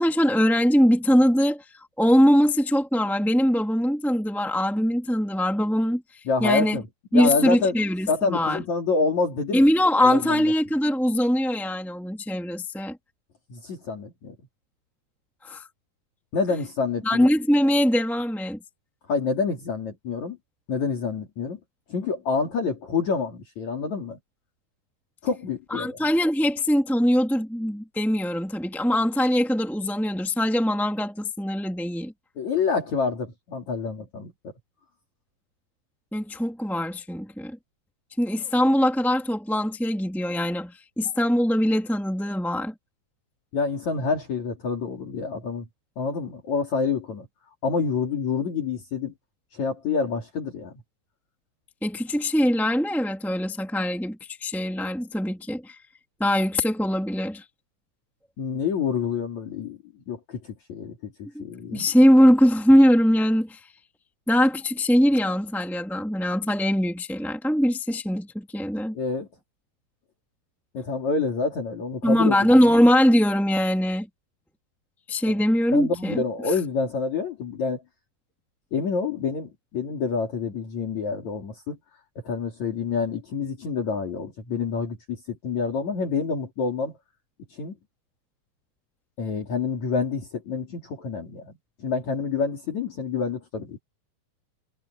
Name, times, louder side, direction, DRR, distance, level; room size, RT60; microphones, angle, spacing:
voice 1, 0.0-1.6 2.0-6.0 6.4-6.8 7.1-8.6 9.5-13.0 15.4-15.6 17.0-18.6 25.7-32.1 36.1-37.6 38.2-42.7 51.8-55.8 56.2-57.4 61.3-61.4 61.7-63.6 64.3-68.9 72.0-74.1 75.1-76.2, equal, ahead, 1.5 m, -22 dB
voice 2, 6.3-6.9 7.1-7.8 8.1-9.7 10.0-10.5 13.5-14.4 16.3-17.3 19.1-20.4 20.7-21.6 21.9-24.2 25.2-26.0 32.4-34.5 43.5-45.7 46.0-47.3 47.6-49.1 49.5-50.7 58.4-59.8 60.1-61.9 68.9-69.3 70.7-72.4 75.3-75.4 75.7-77.8 78.7-81.8 82.2-87.0 87.5-87.8 89.2-91.5 91.8-93.8, left 5 dB, 50° left, 4.1 m, -27 dB
omnidirectional pair, 4.3 m